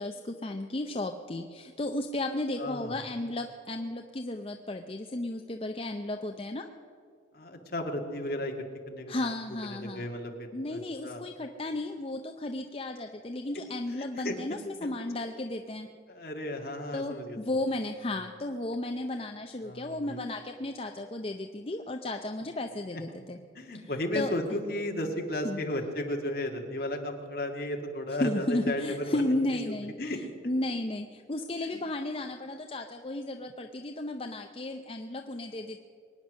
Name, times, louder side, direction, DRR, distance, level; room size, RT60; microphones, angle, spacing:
voice 1, 0.0-6.7 9.1-10.1 10.5-15.9 16.9-23.4 23.7-24.3 25.4-25.6 28.2-35.8, left 1 dB, 30° left, 5 dB, 0.6 m, -34 dB
voice 2, 2.6-3.0 7.3-8.5 8.9-9.3 9.7-11.2 14.0-14.4 16.1-17.4 19.6-20.2 22.9-23.0 23.6-29.3 30.0-30.3, left 1 dB, 55° left, 3 dB, 1.8 m, -34 dB
23.5 x 9.6 x 6.4 m, 2.2 s
head